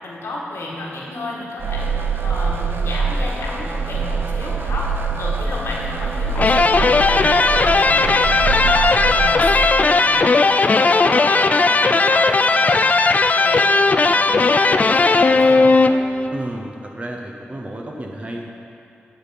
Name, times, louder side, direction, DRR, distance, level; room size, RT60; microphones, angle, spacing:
voice 1, 0.0-1.9 2.2-8.8 9.1-12.9 13.3-13.6 14.0-15.6, left 2 dB, 85° left, -4 dB, 1.7 m, -31 dB
sound 1, 1.6-9.4, right 4 dB, 60° right, 0.7 m, -24 dB
sound 2, 6.4-16.3, left 3 dB, 40° left, 0.3 m, -16 dB
voice 2, 16.3-18.6, right 1 dB, 30° right, 0 dB, 0.8 m, -32 dB
10.0 x 4.1 x 7.5 m, 2.6 s
wide cardioid pair, 80°, 4 cm